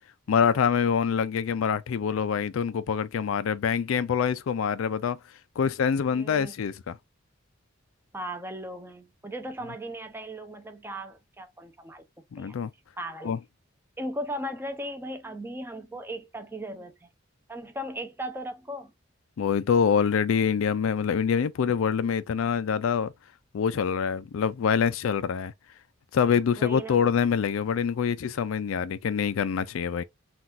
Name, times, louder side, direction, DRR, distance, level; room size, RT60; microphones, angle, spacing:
voice 1, 0.3-5.2 5.6-6.9 12.3-12.7 13.2-13.4 19.4-23.1 23.5-25.5 26.1-30.0, left 7 dB, 80° left, 0.4 m, -25 dB
voice 2, 6.0-6.6 8.1-12.0 12.4-12.6 13.0-13.3 14.0-17.1 17.5-18.9 26.6-27.1, right 1 dB, 10° right, 0.6 m, -37 dB
5.8 x 2.4 x 2.5 m
head